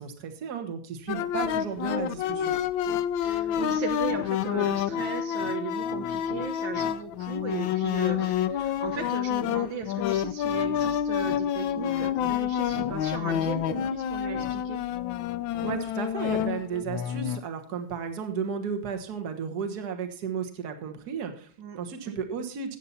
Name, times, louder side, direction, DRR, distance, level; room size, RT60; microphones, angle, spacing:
voice 1, 0.0-2.6 15.6-22.8, right 6 dB, 55° right, 5 dB, 1.8 m, -34 dB
sound 1, 1.1-17.4, left 10 dB, 80° left, 1.4 m, -28 dB
voice 2, 3.2-14.8 21.6-21.8 22.0-22.1, right 5 dB, 75° right, 5 dB, 1.9 m, -37 dB
14.0 x 8.3 x 4.2 m, 0.44 s
omnidirectional pair, 2.2 m